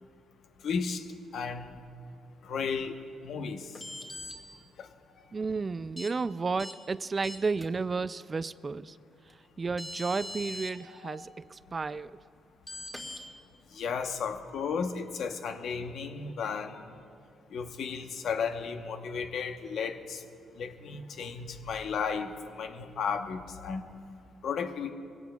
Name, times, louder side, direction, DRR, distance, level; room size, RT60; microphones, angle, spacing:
voice 1, 0.6-1.0 1.3-1.8 2.4-2.9 3.2-3.7 4.8-4.9 10.9-11.2 13.7-16.9 17.5-20.2 20.5-23.8 24.4-24.9, left 6 dB, 65° left, 1.0 m, -34 dB
sound 1, 3.7-4.3 6.0-6.1 6.6-6.7 7.2-7.6 9.3-9.4 9.8-10.7 12.7-13.2, left 1 dB, 15° left, 1.8 m, -40 dB
voice 2, 5.3-9.0 9.6-12.2, right 4 dB, 30° right, 0.3 m, -32 dB
21.5 x 17.0 x 2.3 m
cardioid pair, 90°, 0 cm